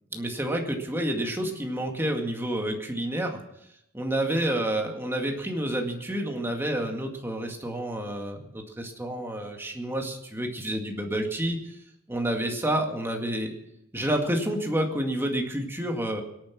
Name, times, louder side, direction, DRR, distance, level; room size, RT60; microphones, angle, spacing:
voice 1, 0.1-3.4 3.9-11.7 12.1-13.5 13.9-16.2, right 1 dB, 10° right, 2 dB, 2.0 m, -29 dB
24.0 x 8.9 x 6.0 m, 0.81 s
head